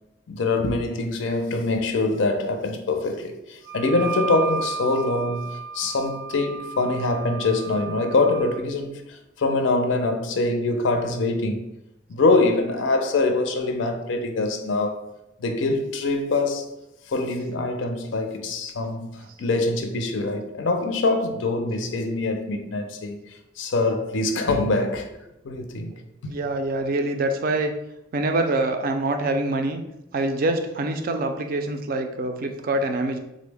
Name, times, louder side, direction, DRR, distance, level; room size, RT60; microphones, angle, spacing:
voice 1, 0.3-11.7 12.1-15.0 15.4-16.7 17.1-19.1 19.4-25.1 25.4-25.9, left 2 dB, 75° left, 0.5 m, -24 dB
Wind instrument woodwind instrument, 3.6-8.6, right 4 dB, 85° right, 0.7 m, -33 dB
voice 2, 26.2-27.7 28.1-29.8 30.1-33.2, right 2 dB, 50° right, 0.4 m, -25 dB
3.7 x 2.0 x 3.3 m
head